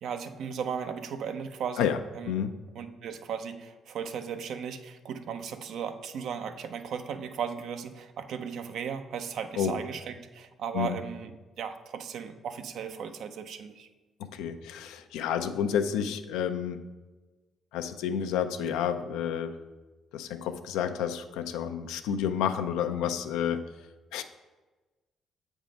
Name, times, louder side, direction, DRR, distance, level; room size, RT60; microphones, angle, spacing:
voice 1, 0.0-2.3 2.7-11.3 11.6-13.9, right 7 dB, 70° right, 8 dB, 0.5 m, -36 dB
voice 2, 14.3-16.8 17.7-19.5 20.1-23.6 24.1-24.2, left 8 dB, 85° left, 9 dB, 0.4 m, -30 dB
7.4 x 3.6 x 5.1 m, 1.2 s
supercardioid pair, 60°, 0 cm